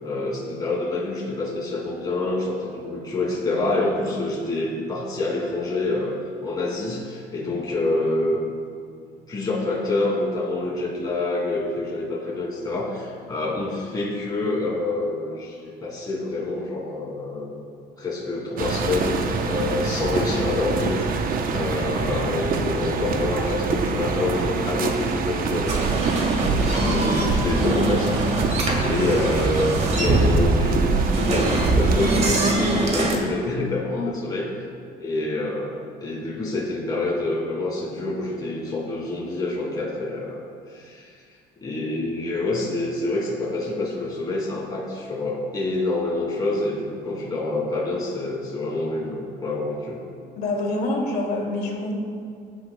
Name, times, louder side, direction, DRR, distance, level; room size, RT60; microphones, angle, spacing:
voice 1, 0.0-6.1 6.4-8.4 9.3-17.7 18.0-34.5 35.0-41.1 41.6-50.0, left 2 dB, 25° left, -5 dB, 2.6 m, -27 dB
sound 1, 18.6-32.5, right 4 dB, 60° right, 0.8 m, -26 dB
sound 2, 25.7-33.2, right 2 dB, 40° right, 1.8 m, -22 dB
voice 2, 50.4-51.9, left 2 dB, 65° left, -1 dB, 2.5 m, -26 dB
17.5 x 9.5 x 2.2 m, 2.2 s
cardioid pair, 110°, 17 cm